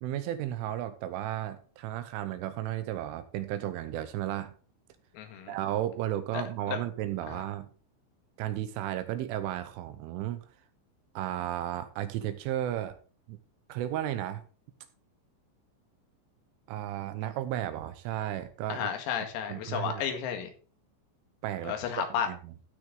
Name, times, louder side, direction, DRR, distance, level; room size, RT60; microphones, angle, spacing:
voice 1, 0.0-4.5 5.5-7.7 8.4-10.4 11.2-13.0 13.3-13.4 13.7-14.4 16.7-18.9 19.2-19.3 19.5-20.1 21.4-21.8 22.3-22.4, right 12 dB, 80° right, 3.1 m, -34 dB
voice 2, 5.1-5.6 6.3-6.4 6.7-6.8 7.3-7.4 18.7-20.5 21.6-22.3, left 8 dB, 85° left, 4.4 m, -32 dB
15.5 x 6.3 x 3.9 m
omnidirectional pair, 6.0 m